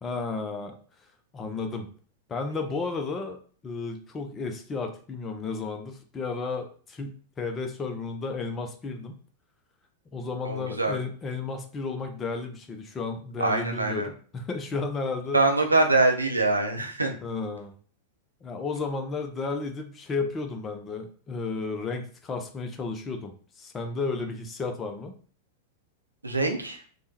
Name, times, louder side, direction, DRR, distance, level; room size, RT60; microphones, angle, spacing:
voice 1, 0.0-0.7 1.3-1.9 2.3-3.4 3.6-9.2 10.1-15.4 17.2-17.7 18.4-25.1, left 4 dB, 20° left, 5 dB, 0.4 m, -33 dB
voice 2, 10.4-11.0 13.4-14.1 15.3-17.2 26.2-26.8, right 2 dB, 80° right, 4 dB, 0.5 m, -24 dB
3.4 x 2.1 x 2.8 m, 0.43 s
figure-of-eight pair, 90°, 0 cm